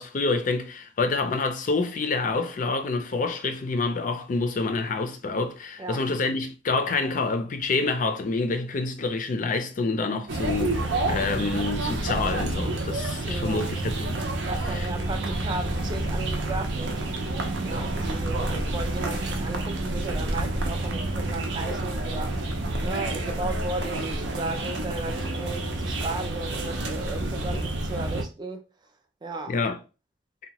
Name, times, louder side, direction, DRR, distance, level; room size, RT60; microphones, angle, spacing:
voice 1, 0.0-14.3 14.5-14.9 29.5-29.8, left 3 dB, 45° left, 0.4 m, -27 dB
sound 1, 10.3-28.2, right 2 dB, 80° right, 0.5 m, -29 dB
voice 2, 13.3-13.7 14.4-17.1 17.6-22.4 22.8-28.6 29.2-29.7, right 2 dB, 25° right, 0.3 m, -35 dB
2.7 x 2.1 x 2.9 m
head